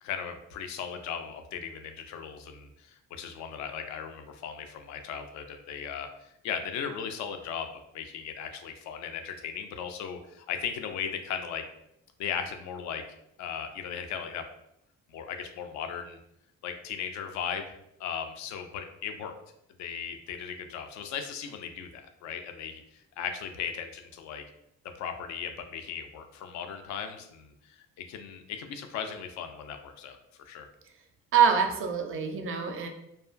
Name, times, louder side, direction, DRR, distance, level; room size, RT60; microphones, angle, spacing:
voice 1, 0.0-7.7 7.9-11.6 12.2-13.0 13.4-14.4 15.1-16.2 16.6-19.3 19.8-24.4 25.0-30.7, left 7 dB, 50° left, 6 dB, 0.4 m, -37 dB
voice 2, 31.3-32.9, right 7 dB, 35° right, 5 dB, 0.5 m, -25 dB
2.3 x 2.2 x 2.4 m, 0.79 s
figure-of-eight pair, 45°, 38 cm